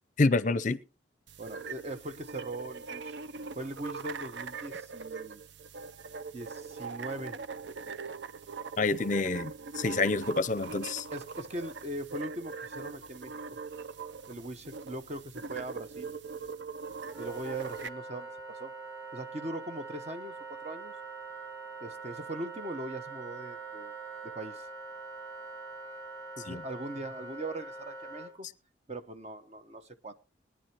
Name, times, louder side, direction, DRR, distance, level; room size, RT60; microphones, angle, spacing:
voice 1, 0.2-0.8 8.8-11.1 26.5-26.6, left 3 dB, 40° left, 0.6 m, -28 dB
sound 1, 1.3-17.9, right 5 dB, 65° right, 0.6 m, -42 dB
voice 2, 1.4-3.2 3.5-5.4 6.3-7.4 11.1-13.4 14.3-16.1 17.2-18.7 19.1-20.9 21.8-24.0 24.2-24.7 26.4-28.5 28.9-30.1, right 1 dB, 35° right, 1.0 m, -40 dB
Wind instrument woodwind instrument, 17.1-28.3, right 4 dB, 15° right, 4.3 m, -43 dB
21.0 x 9.9 x 2.9 m
head